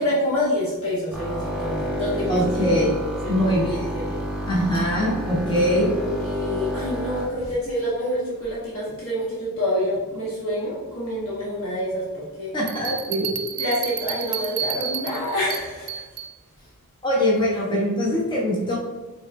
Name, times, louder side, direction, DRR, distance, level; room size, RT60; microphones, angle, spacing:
voice 1, 0.0-2.7 3.2-4.2 5.7-12.5 13.6-16.0, left 1 dB, 65° left, -7 dB, 1.2 m, -27 dB
sound 1, 1.1-7.3, equal, 5° right, 1.2 m, -29 dB
voice 2, 2.3-2.9 3.3-3.9 4.5-5.9 12.5-13.7 17.0-18.8, equal, 20° left, -5 dB, 0.9 m, -23 dB
Bell, 12.7-16.3, right 8 dB, 80° right, 0.4 m, -31 dB
5.0 x 3.9 x 2.6 m, 1.2 s
head